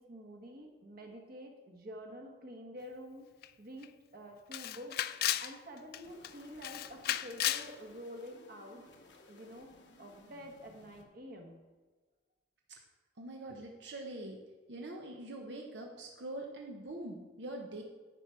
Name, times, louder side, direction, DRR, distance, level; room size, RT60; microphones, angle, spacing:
voice 1, 0.0-3.3 3.6-5.0 5.4-8.8 9.3-9.7 10.0-11.6, equal, 55° right, 2 dB, 1.3 m, -48 dB
Camera, 3.4-3.5 3.8-3.9 4.5-5.5 5.9-6.3 6.6-7.7, left 13 dB, 60° left, 0.3 m, -34 dB
sound 1, 6.0-11.0, left 2 dB, 75° left, 1.0 m, -59 dB
voice 2, 13.2-14.4 14.7-17.8, right 1 dB, 80° right, 1 dB, 0.9 m, -43 dB
9.7 x 4.6 x 5.6 m, 1.3 s
head